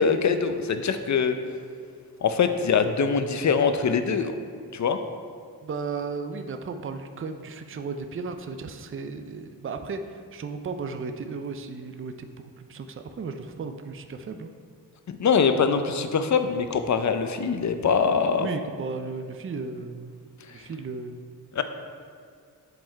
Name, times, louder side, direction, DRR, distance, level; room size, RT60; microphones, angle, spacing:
voice 1, 0.0-1.3 2.2-4.3 4.7-5.0 15.1-18.5 21.5-21.6, left 6 dB, 45° left, 8 dB, 0.6 m, -23 dB
voice 2, 5.6-14.5 18.4-20.1 20.5-21.2, right 4 dB, 35° right, 7 dB, 0.5 m, -35 dB
7.8 x 3.6 x 4.4 m, 2.2 s
cardioid pair, 45°, 39 cm